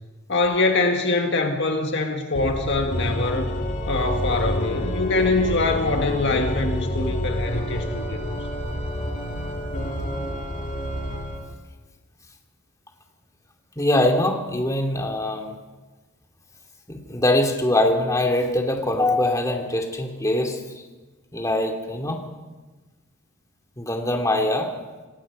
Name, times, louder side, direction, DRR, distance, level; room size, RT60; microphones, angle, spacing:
voice 1, 0.3-3.5 3.9-8.2, left 3 dB, 55° left, 3 dB, 1.8 m, -23 dB
Organ, 2.3-11.5, equal, 35° left, 2.5 m, -28 dB
voice 2, 13.8-15.5 16.9-20.6 21.3-22.2 23.8-24.7, left 1 dB, 15° left, 2 dB, 2.7 m, -22 dB
27.5 x 18.5 x 5.4 m, 1.2 s
head